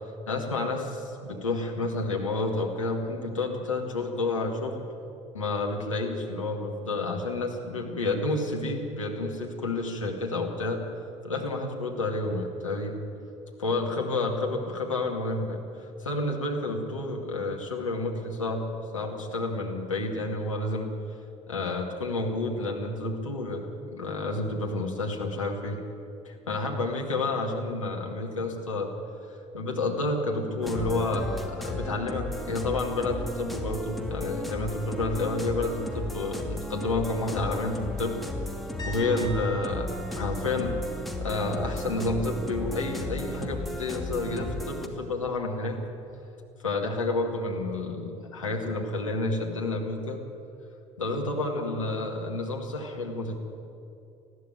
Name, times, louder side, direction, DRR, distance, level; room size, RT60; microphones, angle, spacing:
voice 1, 0.3-4.8 5.3-10.8 11.2-13.0 13.6-18.6 18.9-20.9 21.5-23.7 23.9-25.8 26.2-28.9 29.5-38.2 38.9-40.8 41.2-45.8 46.6-50.2 51.0-53.4, left 2 dB, 80° left, 0 dB, 2.3 m, -30 dB
sound 1, 30.6-44.9, left 1 dB, ahead, 2.5 m, -35 dB
sound 2, 38.8-42.5 42.9-43.2 46.1-46.2, left 1 dB, 25° left, 4.6 m, -45 dB
20.0 x 14.5 x 9.2 m, 2.7 s
figure-of-eight pair, 60°, 16 cm